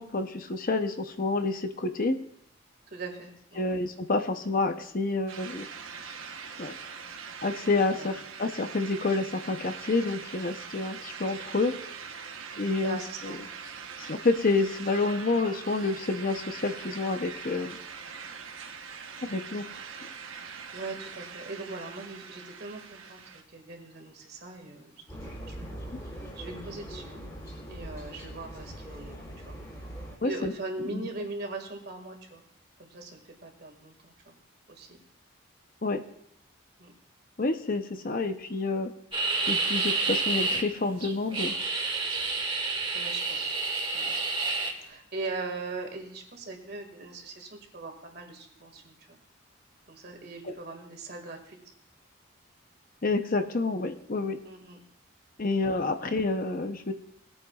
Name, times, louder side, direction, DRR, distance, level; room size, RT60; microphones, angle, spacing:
voice 1, 0.0-2.2 3.6-5.7 6.0-6.1 6.6-6.7 7.4-11.8 12.6-13.4 14.0-17.8 19.3-19.6 30.2-30.5 30.8-31.0 35.8-36.0 37.4-38.9 39.5-41.6 50.4-50.5 53.0-54.4 55.4-56.9, left 3 dB, 40° left, 7 dB, 0.7 m, -28 dB
voice 2, 2.9-3.8 7.9-8.1 12.8-13.4 20.4-27.2 27.7-29.2 29.5-29.6 30.2-32.4 32.8-34.4 34.7-35.0 36.8-36.9 42.9-43.6 43.9-44.2 44.8-49.2 49.9-51.6 54.4-54.8 55.5-55.9, right 3 dB, 50° right, 3 dB, 2.0 m, -40 dB
sound 1, 5.3-23.4, right 6 dB, 70° right, 1.0 m, -42 dB
sound 2, 25.1-30.2, equal, 20° left, 3.2 m, -41 dB
sound 3, 39.1-40.6 41.0-44.7, right 3 dB, 25° right, 2.0 m, -29 dB
20.0 x 9.0 x 2.4 m, 0.74 s
head